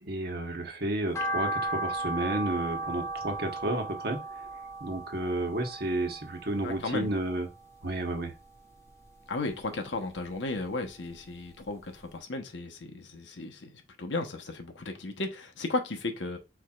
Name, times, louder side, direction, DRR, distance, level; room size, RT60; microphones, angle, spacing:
voice 1, 0.0-4.2 4.8-7.5 7.8-8.3, right 1 dB, 60° right, 1.1 m, -31 dB
sound 1, 1.1-7.5 7.8-9.0 9.3-10.7 11.1-11.2 11.7-11.8 12.0-12.1, right 2 dB, 15° left, 0.6 m, -36 dB
voice 2, 6.6-7.1 9.3-13.7 14.0-16.4, left 2 dB, 90° left, 1.0 m, -34 dB
4.8 x 4.3 x 2.4 m
head